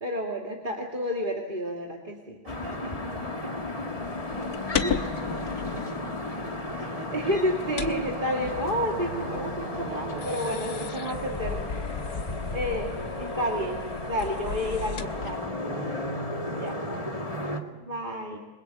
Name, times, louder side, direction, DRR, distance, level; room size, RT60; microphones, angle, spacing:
voice 1, 0.0-2.4 3.4-3.5 4.8-5.1 7.1-12.2 12.5-13.8 14.1-15.7 16.6-16.7 17.9-18.4, equal, 20° right, 0 dB, 2.3 m, -30 dB
voice 2, 2.4-7.3 12.2-12.9 15.6-16.0 16.5-17.9, equal, 55° right, 4 dB, 5.8 m, -47 dB
sound 1, 2.5-17.6, left 1 dB, 15° left, 1.9 m, -34 dB
sound 2, 4.0-15.5, left 7 dB, 50° left, 1.4 m, -37 dB
28.5 x 21.5 x 8.0 m, 1.3 s
omnidirectional pair, 2.4 m